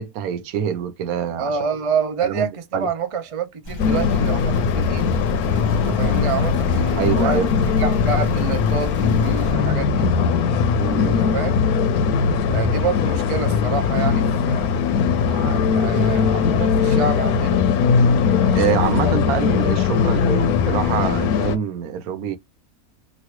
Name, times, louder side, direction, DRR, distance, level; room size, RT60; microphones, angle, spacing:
voice 1, 0.0-1.6 2.2-2.5 2.7-2.9 7.0-7.8 10.8-11.4 15.6-16.0 18.5-22.4, right 9 dB, 80° right, 1.0 m, -25 dB
voice 2, 1.4-5.1 5.5-7.5 7.8-10.1 11.0-11.5 12.5-14.7 15.3-17.6 18.4-18.7 19.0-19.1, right 5 dB, 50° right, 0.4 m, -27 dB
sound 1, 3.6-9.5, left 2 dB, 35° left, 1.0 m, -31 dB
sound 2, 3.8-21.6, left 6 dB, 90° left, 1.1 m, -20 dB
3.1 x 2.5 x 2.9 m
omnidirectional pair, 1.5 m